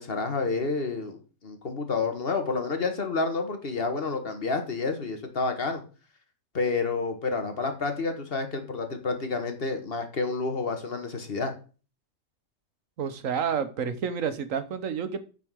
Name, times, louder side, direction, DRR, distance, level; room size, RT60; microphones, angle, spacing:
voice 1, 0.0-5.8 6.5-11.5, left 4 dB, 45° left, 6 dB, 1.8 m, -29 dB
voice 2, 13.0-15.2, right 7 dB, 85° right, 11 dB, 1.4 m, -29 dB
9.5 x 4.7 x 6.2 m, 0.36 s
omnidirectional pair, 1.3 m